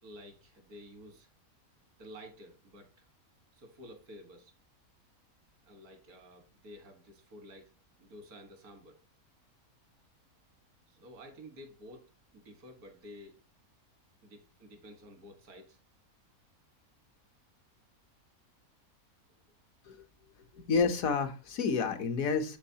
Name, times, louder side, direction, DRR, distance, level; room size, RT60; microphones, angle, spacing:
voice 1, 0.0-1.3 2.0-3.1 3.5-4.5 5.6-7.7 8.0-9.0 10.9-13.4 14.2-15.8 19.3-19.4, equal, 90° right, 2.0 m, -52 dB
voice 2, 20.5-22.6, left 5 dB, 70° left, 1.3 m, -29 dB
12.0 x 4.0 x 2.8 m
omnidirectional pair, 1.5 m